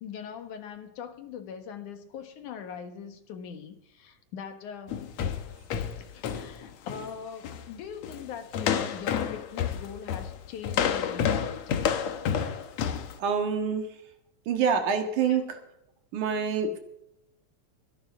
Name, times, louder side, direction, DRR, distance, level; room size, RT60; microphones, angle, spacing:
voice 1, 0.0-5.0 6.0-11.9 15.3-15.4, left 7 dB, 85° left, 7 dB, 3.0 m, -41 dB
sound 1, 4.9-7.1 7.4-7.7 8.0-8.3 8.5-13.1, left 8 dB, 65° left, 2.2 m, -29 dB
voice 2, 13.2-13.8 14.5-15.6 16.1-16.8, right 6 dB, 85° right, 5 dB, 3.2 m, -26 dB
23.5 x 11.5 x 3.7 m, 0.80 s
omnidirectional pair, 3.4 m